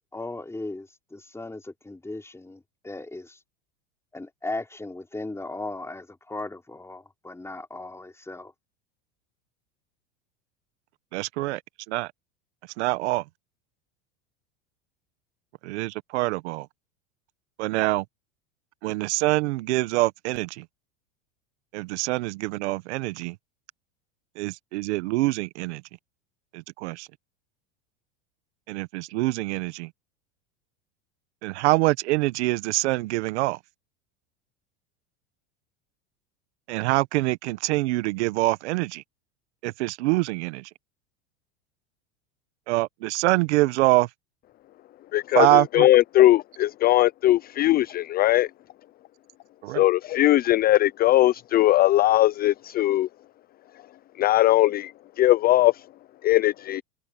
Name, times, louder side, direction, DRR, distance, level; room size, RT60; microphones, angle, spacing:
voice 1, 0.1-3.4 4.1-8.5, left 2 dB, 10° left, 4.7 m, -37 dB
voice 2, 11.1-11.6 11.9-12.1 12.8-13.2 15.6-16.7 17.6-18.0 18.8-20.6 21.7-23.4 24.4-25.8 26.5-27.1 28.7-29.9 31.4-33.6 36.7-39.0 39.6-40.7 42.7-44.1 45.3-45.9 49.6-49.8, right 20 dB, 75° right, 1.2 m, -25 dB
voice 3, 45.1-48.5 49.7-53.1 54.2-55.9 56.2-56.8, left 14 dB, 30° left, 0.4 m, -20 dB
supercardioid pair, 110°, 34 cm